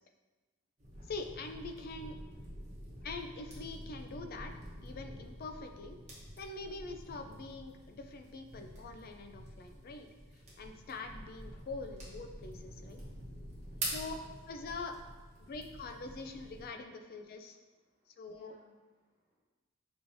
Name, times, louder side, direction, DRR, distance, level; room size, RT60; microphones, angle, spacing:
sound 1, 0.8-16.7, right 1 dB, 35° right, 1.0 m, -47 dB
voice 1, 1.1-2.2 3.0-4.5 4.8-6.0 6.4-10.1 10.6-13.0 13.8-14.2 14.5-15.0 15.4-17.6 18.1-18.6, left 3 dB, 45° left, 6 dB, 0.3 m, -44 dB
voice 2, 12.8-14.2 15.4-15.5 17.8-18.7 19.0-19.4, equal, 5° right, -14 dB, 1.2 m, -68 dB
5.3 x 3.0 x 2.6 m, 1.3 s
head